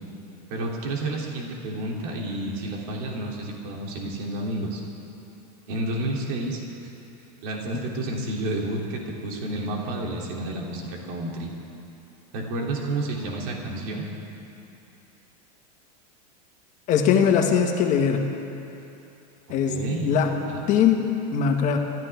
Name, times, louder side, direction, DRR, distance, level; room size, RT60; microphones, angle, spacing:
voice 1, 0.5-4.8 5.7-6.6 7.4-11.5 12.3-14.1 19.6-20.1 20.5-20.6, right 2 dB, 60° right, -1 dB, 3.1 m, -30 dB
voice 2, 16.9-18.3 19.5-20.3 20.7-21.0 21.3-21.8, left 7 dB, 35° left, 3 dB, 1.7 m, -21 dB
29.0 x 13.5 x 3.6 m, 2.8 s
supercardioid pair, 145°, 21 cm